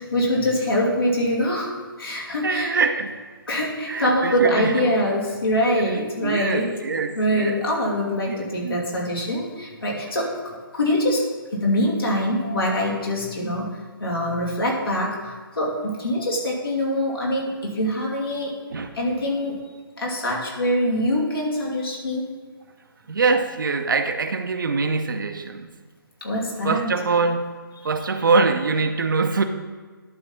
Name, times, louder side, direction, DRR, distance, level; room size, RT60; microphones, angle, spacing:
voice 1, 0.1-1.7 2.0-2.7 3.5-6.7 7.1-13.7 14.0-18.5 18.9-19.6 20.0-22.3 26.2-26.9, equal, 75° left, -3 dB, 2.7 m, -24 dB
voice 2, 2.4-3.2 3.9-4.7 6.2-7.6 8.3-8.4 8.6-8.9 11.8-11.9 18.7-18.9 23.1-25.7 26.6-27.4 27.8-29.4, right 4 dB, 60° right, 7 dB, 0.8 m, -23 dB
11.0 x 4.1 x 5.8 m, 1.5 s
figure-of-eight pair, 140°, 12 cm